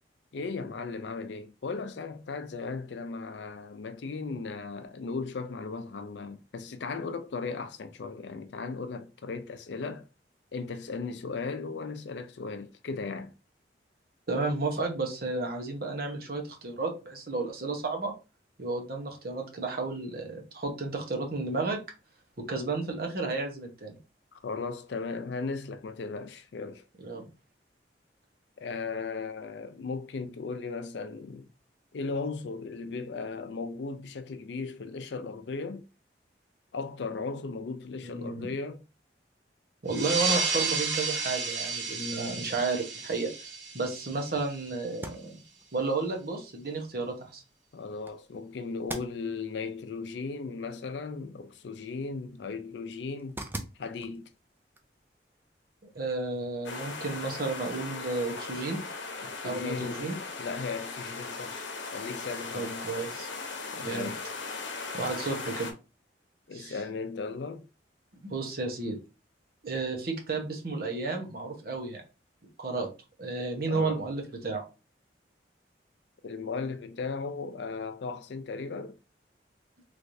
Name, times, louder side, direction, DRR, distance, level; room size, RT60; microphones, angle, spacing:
voice 1, 0.3-10.1 10.5-13.3 24.3-26.8 28.6-31.5 31.9-35.9 36.7-38.8 47.7-53.4 53.8-54.3 59.2-60.1 60.4-62.9 63.7-64.2 66.5-67.7 73.6-74.0 76.2-79.0, left 4 dB, 70° left, 0.4 m, -36 dB
voice 2, 14.3-18.1 18.6-21.8 22.4-23.9 27.0-27.2 38.0-38.5 39.8-45.3 45.7-47.4 55.9-58.8 59.4-60.2 62.5-63.3 63.8-64.1 64.9-65.7 66.5-66.7 68.2-69.0 69.6-72.0 72.6-72.9 73.2-74.6, right 3 dB, 55° right, 0.9 m, -32 dB
sound 1, 39.9-45.0, right 4 dB, 75° right, 1.2 m, -32 dB
sound 2, 44.9-56.5, right 1 dB, 10° right, 0.4 m, -48 dB
sound 3, 56.6-65.7, left 4 dB, 90° left, 0.8 m, -38 dB
3.2 x 3.2 x 2.6 m
head